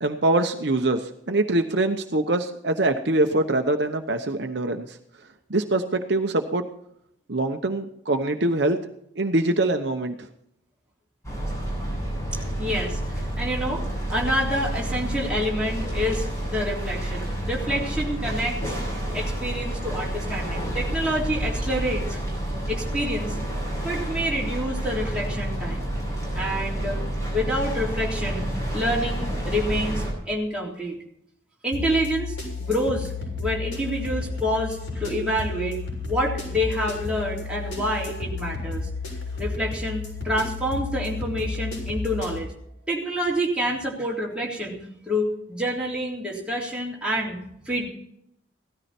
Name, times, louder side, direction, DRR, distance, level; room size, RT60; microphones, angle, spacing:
voice 1, 0.0-5.0 5.5-6.7 7.3-8.8 9.2-10.1, right 2 dB, 60° right, 5 dB, 1.0 m, -24 dB
sound 1, 11.2-30.1, right 1 dB, 15° left, 7.5 m, -29 dB
voice 2, 12.6-18.8 19.1-22.2 22.7-23.4 23.8-25.9 26.3-27.0 27.3-31.0 31.6-33.1 33.4-35.8 36.1-38.9 39.4-42.5 42.9-47.9, equal, 5° right, -5 dB, 3.7 m, -28 dB
sound 2, 31.7-42.4, left 4 dB, 90° left, 6.9 m, -32 dB
17.0 x 13.5 x 4.4 m, 0.74 s
head